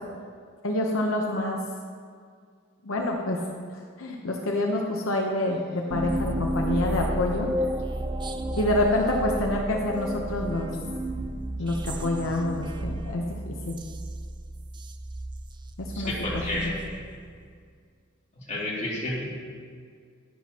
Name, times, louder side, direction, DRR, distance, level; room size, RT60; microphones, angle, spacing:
voice 1, 0.6-1.6 2.8-3.4 4.0-7.5 8.6-10.7 11.6-13.8 15.8-16.6, left 1 dB, 80° left, 0 dB, 0.9 m, -27 dB
sound 1, 5.9-17.5, right 1 dB, 25° right, 0.4 m, -32 dB
voice 2, 15.9-17.0 18.5-19.3, left 1 dB, 35° left, -7 dB, 2.8 m, -31 dB
12.0 x 10.5 x 2.9 m, 2.1 s
head